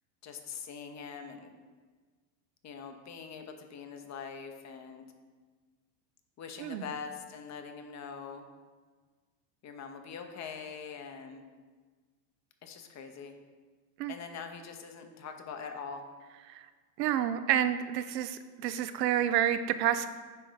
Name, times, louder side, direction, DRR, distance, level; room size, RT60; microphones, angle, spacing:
voice 1, 0.2-1.5 2.6-5.1 6.4-8.5 9.6-11.5 12.6-13.3 14.1-16.0, left 6 dB, 35° left, 6 dB, 0.9 m, -43 dB
voice 2, 17.0-20.1, right 10 dB, 75° right, 11 dB, 0.6 m, -29 dB
10.0 x 3.8 x 3.9 m, 1.4 s
hypercardioid pair, 95°, 49 cm